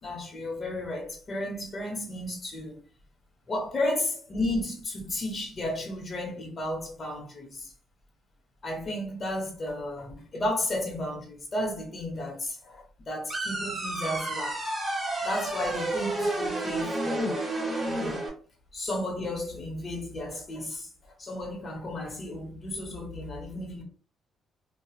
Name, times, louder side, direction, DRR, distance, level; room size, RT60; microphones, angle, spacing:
voice 1, 0.0-2.8 3.5-7.7 8.6-14.6 15.2-17.5 17.8-18.3 18.7-20.9 21.2-23.8, left 1 dB, 40° left, 1.1 m, -33 dB
sound 1, 13.3-18.3, right 2 dB, 20° right, 1.5 m, -30 dB
2.9 x 2.4 x 2.3 m
cardioid pair, 90°, 0 cm